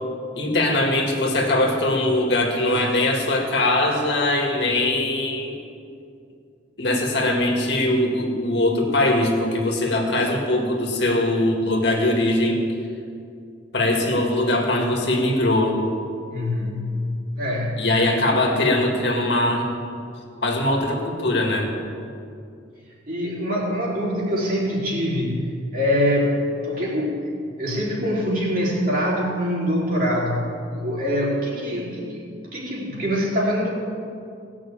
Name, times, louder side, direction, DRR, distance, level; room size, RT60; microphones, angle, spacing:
voice 1, 0.3-5.6 6.8-12.6 13.7-15.9 17.8-19.7 20.4-21.7, left 1 dB, 60° left, 0 dB, 2.1 m, -21 dB
voice 2, 16.3-18.2 23.1-25.5 25.7-26.4 26.6-27.2 27.6-33.7, equal, 45° right, -5 dB, 3.5 m, -24 dB
17.0 x 6.2 x 8.8 m, 2.4 s
head